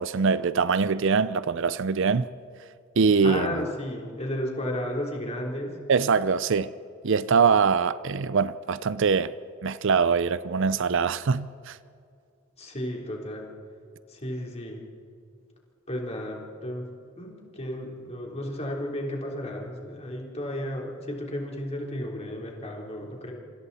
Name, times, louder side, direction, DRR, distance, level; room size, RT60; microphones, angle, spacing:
voice 1, 0.0-2.3 3.0-3.7 5.9-6.7 7.0-9.3 9.6-11.8, right 5 dB, 60° right, 0.5 m, -23 dB
voice 2, 3.2-5.7 12.6-13.5 14.1-14.8 15.9-16.9 17.2-23.3, left 1 dB, 30° left, 3.7 m, -33 dB
27.0 x 25.5 x 4.2 m
head